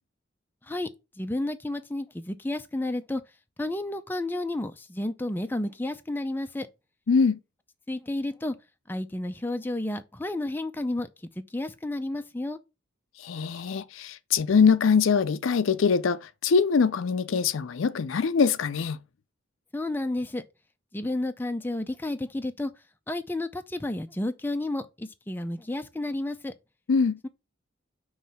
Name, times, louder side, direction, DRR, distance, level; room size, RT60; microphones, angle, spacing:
voice 1, 1.2-3.2 3.6-6.7 7.9-8.6 8.9-11.1 11.5-12.6 19.7-20.4 20.9-22.7 23.1-26.5 27.2-27.3, left 1 dB, 10° left, 0.4 m, -31 dB
voice 2, 7.1-7.4 13.2-19.0 26.9-27.2, left 5 dB, 70° left, 0.4 m, -23 dB
5.6 x 3.1 x 5.6 m
head